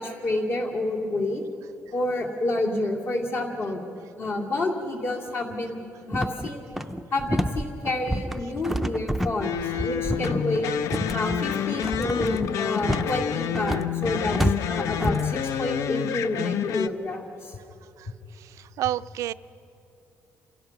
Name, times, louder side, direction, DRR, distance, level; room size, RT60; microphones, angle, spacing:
voice 1, 0.0-1.4 1.9-3.8 4.2-5.8 6.1-6.6 7.1-9.6 9.8-10.7 11.1-17.6, left 2 dB, 55° left, 1 dB, 2.4 m, -29 dB
sound 1, 6.1-15.3, equal, ahead, 0.5 m, -29 dB
sound 2, 9.4-16.9, left 9 dB, 80° left, 0.6 m, -28 dB
voice 2, 18.8-19.3, right 13 dB, 75° right, 14 dB, 0.4 m, -28 dB
27.5 x 16.5 x 5.9 m, 2.7 s
cardioid pair, 180°, 5 cm